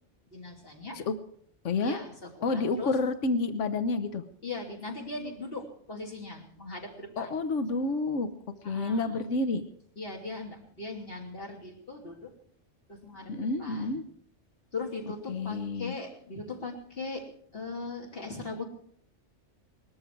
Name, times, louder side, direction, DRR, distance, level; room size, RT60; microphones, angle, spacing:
voice 1, 0.3-1.0 1.8-2.9 4.4-7.3 8.6-9.1 10.0-12.3 12.9-14.0 14.7-17.2 17.5-18.6, left 3 dB, 50° left, 1 dB, 3.1 m, -39 dB
voice 2, 1.6-2.0 2.4-4.2 7.2-8.3 8.6-9.6 13.3-14.0 15.3-15.9, left 3 dB, 75° left, 10 dB, 1.4 m, -29 dB
20.5 x 13.5 x 4.7 m, 0.62 s
omnidirectional pair, 1.3 m